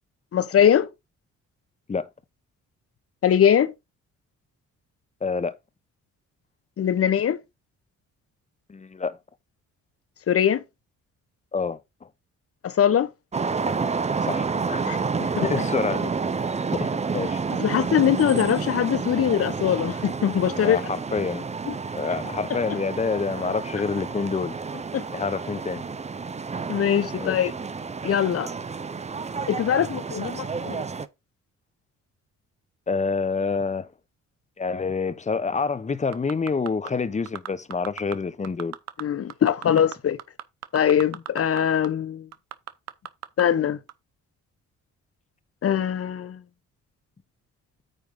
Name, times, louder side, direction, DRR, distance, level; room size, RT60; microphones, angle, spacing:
voice 1, 0.3-0.9 3.2-3.7 6.8-7.4 10.3-10.6 12.6-13.1 14.8-15.5 17.6-20.8 21.7-21.8 22.5-22.6 24.9-25.0 26.7-27.5 28.0-28.5 29.5-30.8 39.0-40.2 40.7-42.3 43.4-43.8 45.6-46.4, left 9 dB, 50° left, 1.0 m, -22 dB
voice 2, 5.2-5.6 8.7-9.2 11.5-11.8 14.2-14.8 15.4-16.1 16.7-17.4 20.5-21.5 21.9-24.6 25.1-25.8 27.2-27.5 32.9-33.9 34.6-38.7, left 4 dB, 25° left, 0.9 m, -27 dB
sound 1, 13.3-31.1, right 5 dB, 20° right, 0.7 m, -30 dB
sound 2, 36.1-36.9 37.3-38.1 38.4-39.0 39.3-41.6 41.8-41.9 42.3-43.4 43.9-44.0, right 11 dB, 60° right, 0.9 m, -36 dB
9.2 x 3.5 x 5.3 m
cardioid pair, 90°, 30 cm